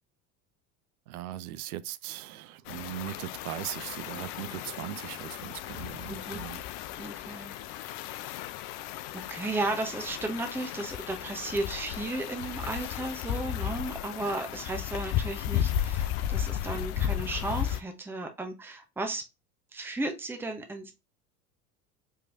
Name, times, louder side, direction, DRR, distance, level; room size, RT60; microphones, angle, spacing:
voice 1, 1.1-6.6, right 13 dB, 75° right, 0.5 m, -39 dB
sound 1, 2.7-17.8, left 11 dB, 55° left, 0.6 m, -34 dB
voice 2, 6.1-6.4 7.0-7.6 9.1-19.2 19.7-20.9, right 2 dB, 5° right, 0.8 m, -34 dB
4.5 x 3.2 x 2.5 m
hypercardioid pair, 75°, 45 cm